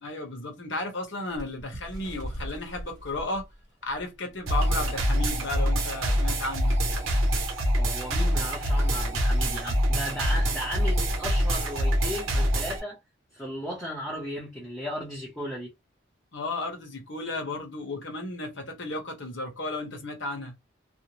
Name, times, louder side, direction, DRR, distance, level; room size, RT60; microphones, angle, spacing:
voice 1, 0.0-3.5 3.8-6.8 16.3-20.5, left 2 dB, 60° left, 1.0 m, -34 dB
Bird, 1.3-4.5 5.0-5.1 5.4-5.7 6.4-6.5, equal, 15° right, 1.2 m, -41 dB
sound 1, 4.5-12.8, equal, 85° right, 0.9 m, -25 dB
voice 2, 7.8-13.0 13.3-15.7, equal, ahead, 0.7 m, -35 dB
2.6 x 2.0 x 3.0 m
head